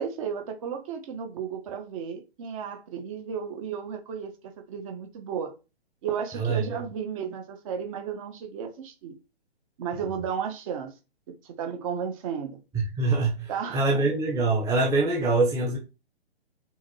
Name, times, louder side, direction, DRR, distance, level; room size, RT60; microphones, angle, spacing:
voice 1, 0.0-5.5 6.0-9.1 9.8-10.9 11.4-12.6 13.5-13.8, right 7 dB, 30° right, 1.6 m, -33 dB
voice 2, 6.3-6.8 12.7-15.8, right 3 dB, 10° right, 1.4 m, -24 dB
6.1 x 4.7 x 6.3 m
hypercardioid pair, 160°, 32 cm